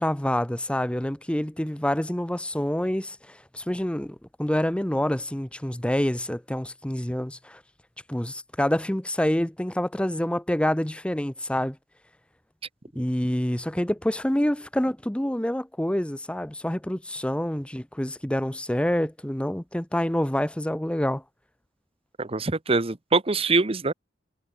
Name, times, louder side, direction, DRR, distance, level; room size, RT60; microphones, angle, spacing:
voice 1, 0.0-7.6 8.1-11.8 12.9-21.2, left 1 dB, 5° left, 0.7 m, -27 dB
voice 2, 22.2-23.9, right 3 dB, 35° right, 0.9 m, -24 dB
head